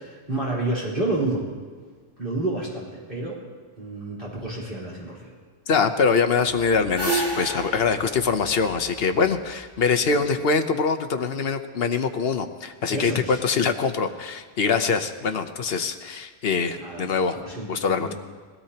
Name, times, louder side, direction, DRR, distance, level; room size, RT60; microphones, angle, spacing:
voice 1, 0.0-1.5 2.2-3.4 3.8-5.3 10.0-10.2 12.9-13.4 16.8-18.1, right 2 dB, 50° right, -7 dB, 4.2 m, -30 dB
voice 2, 5.7-17.4 17.7-18.1, left 5 dB, 60° left, 9 dB, 1.0 m, -23 dB
sound 1, 6.5-9.6, right 2 dB, 20° right, 4.6 m, -30 dB
21.5 x 16.5 x 2.9 m, 1.5 s
omnidirectional pair, 1.2 m